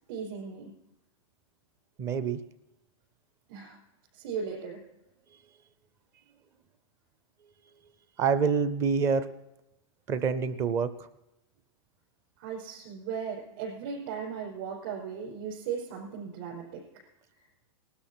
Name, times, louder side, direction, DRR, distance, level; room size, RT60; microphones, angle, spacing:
voice 1, 0.1-0.7 3.5-3.8 4.1-4.8 12.4-16.8, right 6 dB, 45° right, -4 dB, 5.0 m, -37 dB
voice 2, 2.0-2.4 8.2-9.3 10.1-11.1, right 5 dB, 15° right, 14 dB, 0.6 m, -26 dB
19.0 x 12.5 x 4.4 m, 0.90 s
supercardioid pair, 175°, 17 cm